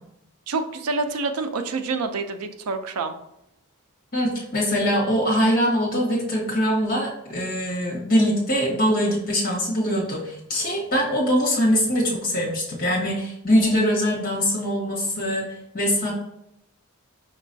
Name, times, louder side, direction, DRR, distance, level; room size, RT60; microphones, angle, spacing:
voice 1, 0.5-3.1, right 3 dB, 90° right, 8 dB, 0.5 m, -27 dB
voice 2, 4.1-15.5 15.7-16.1, equal, 40° left, -4 dB, 1.4 m, -22 dB
5.3 x 3.0 x 2.6 m, 0.80 s
head